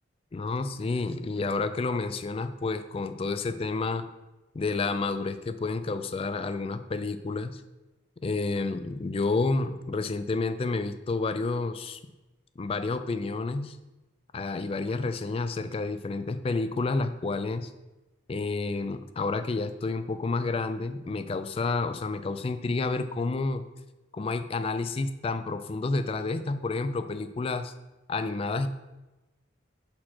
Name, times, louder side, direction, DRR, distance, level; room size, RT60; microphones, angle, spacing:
voice 1, 0.3-4.1 4.5-7.6 8.2-12.0 12.6-13.8 14.3-17.7 18.3-23.6 24.1-27.7 28.1-28.7, left 3 dB, 30° left, 10 dB, 0.3 m, -30 dB
6.1 x 4.4 x 4.3 m, 1.1 s
head